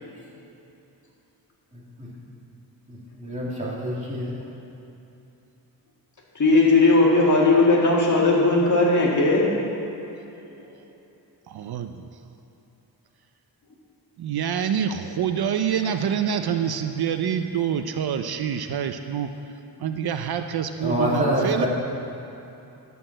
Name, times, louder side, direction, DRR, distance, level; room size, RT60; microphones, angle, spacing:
voice 1, 2.9-4.4 15.6-15.9 20.8-21.7, equal, 15° right, -6 dB, 2.4 m, -27 dB
voice 2, 6.4-9.5, left 2 dB, 45° left, -4 dB, 2.0 m, -18 dB
voice 3, 11.5-12.1 14.2-19.3 19.8-21.7, right 8 dB, 65° right, 8 dB, 0.5 m, -26 dB
11.0 x 6.9 x 7.5 m, 2.9 s
wide cardioid pair, 170°, 40 cm